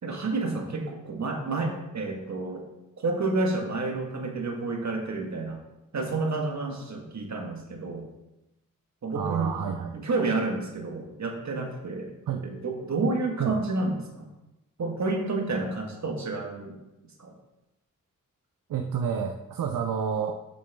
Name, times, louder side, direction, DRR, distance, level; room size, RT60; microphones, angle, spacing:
voice 1, 0.0-2.6 3.0-5.6 5.9-8.1 9.0-9.5 9.9-12.1 12.4-14.3 14.8-16.7 17.2-17.3, right 3 dB, 55° right, 2 dB, 1.5 m, -30 dB
voice 2, 9.1-10.0 12.3-12.5 13.4-13.6 18.7-20.3, right 7 dB, 75° right, 5 dB, 0.6 m, -29 dB
7.9 x 6.3 x 3.5 m, 0.96 s
wide cardioid pair, 95°, 34 cm